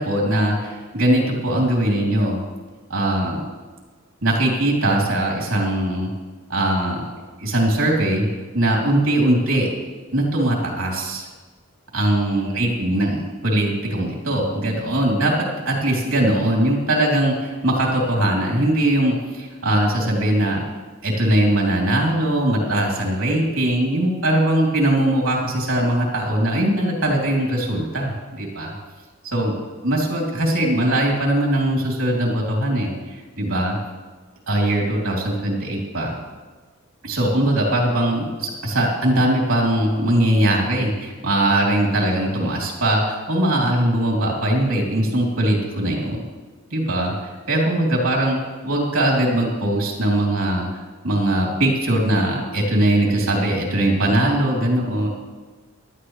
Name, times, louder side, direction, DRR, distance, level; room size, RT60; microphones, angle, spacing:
voice 1, 0.0-2.4 2.9-3.4 4.2-6.1 6.5-7.0 7.4-8.3 8.5-9.7 10.1-11.3 11.9-20.6 21.0-28.7 29.3-29.5 29.8-33.8 34.5-36.2 37.0-46.2 46.7-48.4 48.6-55.1, right 1 dB, 80° right, -1 dB, 3.2 m, -20 dB
17.5 x 12.0 x 3.2 m, 1.4 s
head